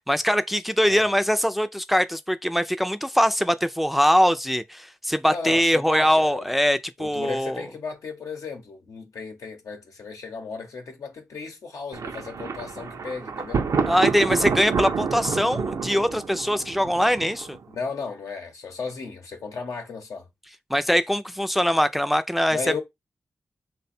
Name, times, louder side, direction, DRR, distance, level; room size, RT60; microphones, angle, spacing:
voice 1, 0.1-7.6 13.9-17.6 20.7-22.8, equal, ahead, 0.3 m, -22 dB
voice 2, 5.3-6.5 7.0-13.7 17.7-20.3 22.5-22.8, left 5 dB, 85° left, 0.8 m, -35 dB
Thunder, 11.9-17.7, right 5 dB, 80° right, 0.4 m, -28 dB
3.2 x 2.2 x 4.2 m
cardioid pair, 45°, 5 cm